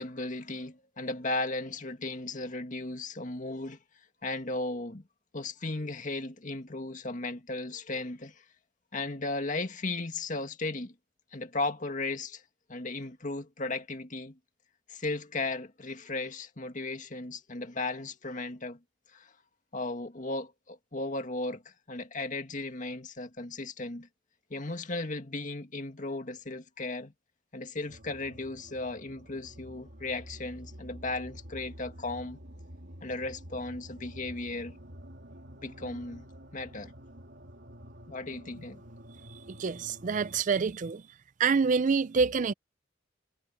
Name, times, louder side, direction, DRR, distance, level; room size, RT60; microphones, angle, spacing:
voice 1, 0.0-3.8 4.2-5.1 5.3-8.4 8.9-10.9 11.3-12.4 12.7-14.4 14.9-18.8 19.1-19.3 19.7-24.1 24.5-27.1 27.5-32.4 33.0-34.8 35.6-36.2 36.5-36.9 38.1-38.8, left 2 dB, 45° left, 2.0 m, -36 dB
sound 1, 27.9-40.4, equal, 65° right, 3.5 m, -49 dB
voice 2, 39.5-41.0 41.4-42.5, right 5 dB, 45° right, 0.4 m, -26 dB
head